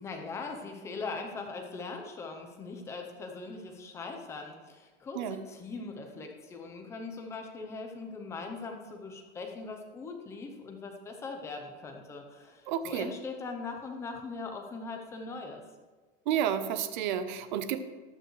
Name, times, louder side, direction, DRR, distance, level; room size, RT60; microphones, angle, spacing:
voice 1, 0.0-15.6, left 4 dB, 10° left, 3 dB, 0.6 m, -40 dB
voice 2, 12.7-13.1 16.3-17.8, right 9 dB, 45° right, 11 dB, 0.8 m, -30 dB
14.5 x 10.5 x 3.2 m, 1.3 s
supercardioid pair, 175°, 32 cm